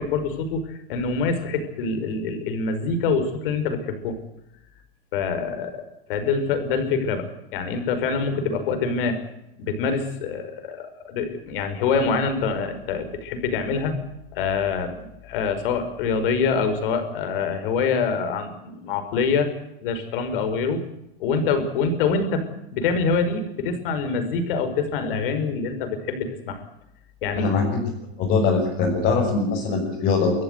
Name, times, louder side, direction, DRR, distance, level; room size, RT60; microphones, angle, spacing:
voice 1, 0.0-4.2 5.1-5.8 6.1-9.2 9.6-14.0 14.3-15.0 15.2-19.5 19.8-20.9 21.2-22.4 22.7-26.6 27.2-27.5, left 5 dB, 60° left, 8 dB, 5.7 m, -25 dB
voice 2, 27.4-27.9 28.2-30.4, left 4 dB, 30° left, -3 dB, 6.5 m, -22 dB
25.0 x 14.5 x 8.3 m, 0.85 s
supercardioid pair, 155°, 31 cm